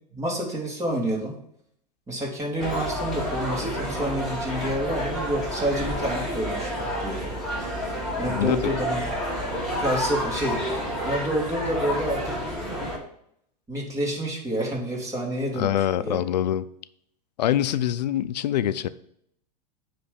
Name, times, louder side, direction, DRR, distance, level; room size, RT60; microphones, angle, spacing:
voice 1, 0.1-1.4 2.1-7.3 8.2-9.0 9.8-12.3 13.7-16.2, right 1 dB, 15° right, 2.4 m, -28 dB
sound 1, 2.6-13.0, equal, ahead, 2.4 m, -29 dB
voice 2, 8.2-8.6 15.6-16.7 17.4-18.9, left 11 dB, 90° left, 0.4 m, -24 dB
9.5 x 3.2 x 5.0 m
hypercardioid pair, 120°, 21 cm